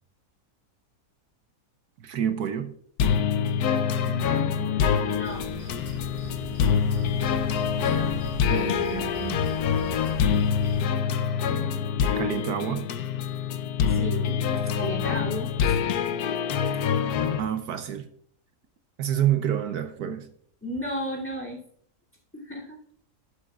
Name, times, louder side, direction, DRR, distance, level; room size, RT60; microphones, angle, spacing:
voice 1, 2.0-2.7 7.8-7.9 8.5-9.5 12.2-12.9 17.4-18.1 19.0-20.3, right 9 dB, 75° right, 1.3 m, -28 dB
sound 1, 3.0-17.4, left 7 dB, 75° left, 1.2 m, -25 dB
voice 2, 4.1-5.5 7.8-8.1 13.9-15.8 20.6-21.6 22.3-22.8, left 1 dB, 10° left, 2.7 m, -34 dB
sound 2, 5.2-10.9, right 2 dB, 10° right, 4.2 m, -40 dB
12.0 x 11.5 x 2.4 m
omnidirectional pair, 1.7 m